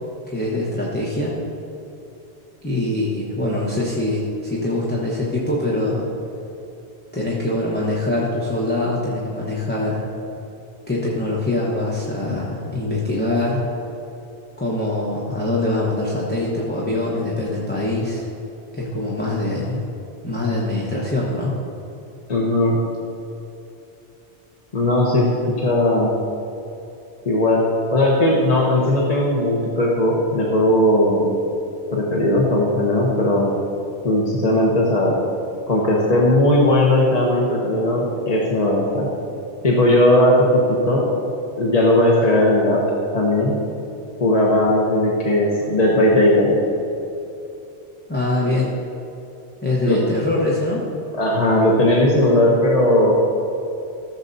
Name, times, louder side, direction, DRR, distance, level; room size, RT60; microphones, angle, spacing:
voice 1, 0.3-1.4 2.6-6.1 7.1-10.0 10.9-13.7 14.6-18.3 18.7-19.8 20.2-21.6 48.1-48.7 49.6-50.8, left 2 dB, 10° left, -6 dB, 1.0 m, -23 dB
voice 2, 22.3-22.8 24.7-26.1 27.3-27.7 27.9-31.3 31.9-33.5 34.0-35.2 35.7-39.1 39.6-41.0 41.6-42.9 43.1-43.5 44.2-46.5 49.8-50.0 51.2-53.1, left 1 dB, 40° left, -4 dB, 1.0 m, -17 dB
14.5 x 7.0 x 2.7 m, 2.8 s
omnidirectional pair, 1.2 m